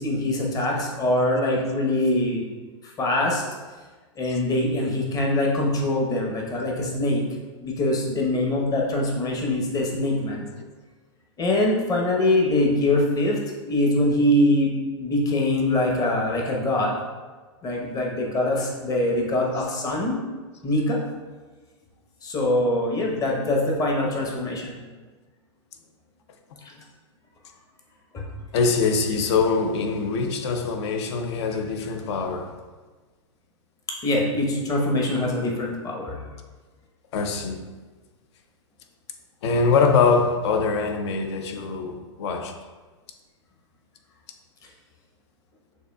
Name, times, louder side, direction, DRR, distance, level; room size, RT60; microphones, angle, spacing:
voice 1, 0.0-2.5 2.8-3.4 4.2-7.2 7.6-10.5 11.4-13.4 13.7-16.9 17.6-20.2 20.6-21.0 22.2-24.8 26.6-26.7 28.1-28.3 34.0-36.2, left 1 dB, 25° left, 0.8 m, -23 dB
voice 2, 28.5-32.5 37.1-37.6 39.4-42.5, left 4 dB, 60° left, 0.5 m, -23 dB
6.6 x 2.8 x 2.2 m
hypercardioid pair, 120°, 16 cm